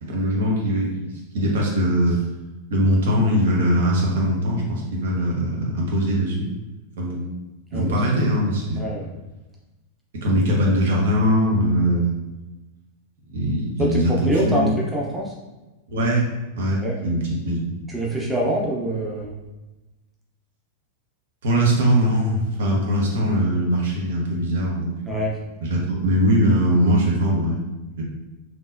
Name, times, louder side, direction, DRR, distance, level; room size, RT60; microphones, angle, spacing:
voice 1, 0.0-2.2 2.7-6.5 7.0-7.2 7.7-8.8 10.2-12.1 13.3-14.7 15.9-16.3 16.5-17.7 21.4-25.2 25.6-27.6 28.0-28.1, equal, 60° right, -2 dB, 0.9 m, -21 dB
voice 2, 13.8-15.3 16.8-16.9 17.9-19.3 25.0-25.3, right 1 dB, 10° right, -3 dB, 0.7 m, -25 dB
3.7 x 2.9 x 2.5 m, 1.1 s
figure-of-eight pair, 90°, 0 cm